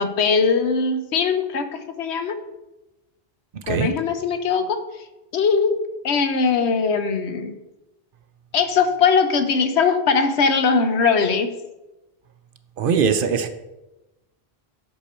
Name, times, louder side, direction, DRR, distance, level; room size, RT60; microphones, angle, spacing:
voice 1, 0.0-2.4 3.7-4.8 5.3-5.8 6.0-7.5 8.5-11.5, left 5 dB, 90° left, 9 dB, 1.1 m, -20 dB
voice 2, 12.8-13.5, right 6 dB, 60° right, 9 dB, 0.8 m, -21 dB
8.1 x 6.0 x 4.3 m, 0.99 s
omnidirectional pair, 1.1 m